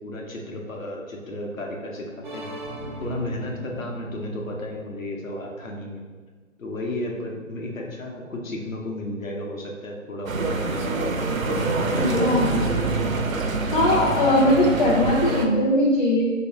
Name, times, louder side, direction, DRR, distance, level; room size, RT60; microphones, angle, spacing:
voice 1, 0.0-2.5 3.0-6.0 6.6-10.9 11.4-12.9, left 1 dB, 75° left, -1 dB, 1.0 m, -33 dB
sound 1, 2.2-6.0, right 2 dB, 40° right, 0.5 m, -38 dB
sound 2, 10.3-15.5, right 3 dB, 75° right, 0.7 m, -25 dB
voice 2, 12.0-12.5 13.7-16.2, left 1 dB, 35° left, -5 dB, 0.7 m, -20 dB
3.0 x 2.9 x 4.4 m, 1.4 s
figure-of-eight pair, 140°, 40 cm